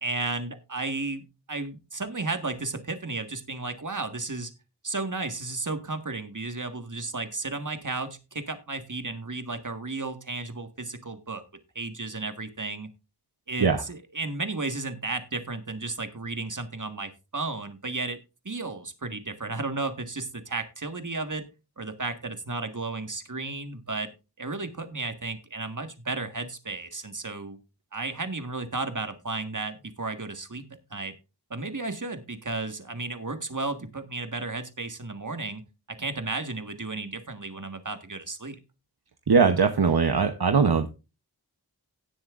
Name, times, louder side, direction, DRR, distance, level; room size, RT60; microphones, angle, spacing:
voice 1, 0.0-4.5 4.8-11.4 11.8-12.9 13.5-18.2 18.5-21.5 21.8-24.1 24.4-27.6 27.9-31.1 31.5-35.6 35.9-38.6, right 3 dB, 50° right, 7 dB, 1.7 m, -33 dB
voice 2, 39.3-40.9, right 5 dB, 65° right, 7 dB, 0.9 m, -21 dB
17.0 x 7.5 x 2.5 m, 0.28 s
wide cardioid pair, 45°, 40 cm